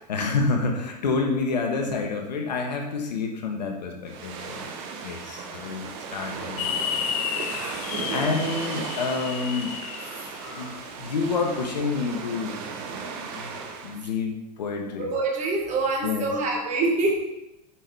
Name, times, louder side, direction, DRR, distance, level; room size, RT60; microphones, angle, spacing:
voice 1, 0.0-4.7 5.0-7.1 8.1-9.8 10.5-12.6 12.9-13.5 13.8-15.1 16.0-16.3, left 4 dB, 85° left, 3 dB, 1.4 m, -28 dB
sound 1, 4.1-14.0, right 5 dB, 50° right, 1.2 m, -36 dB
sound 2, 6.6-10.8, left 9 dB, 55° left, 0.6 m, -32 dB
voice 2, 7.9-8.3 10.2-10.3 15.0-17.2, right 3 dB, 35° right, 0 dB, 2.0 m, -26 dB
7.4 x 5.9 x 3.5 m, 0.94 s
hypercardioid pair, 110°, 21 cm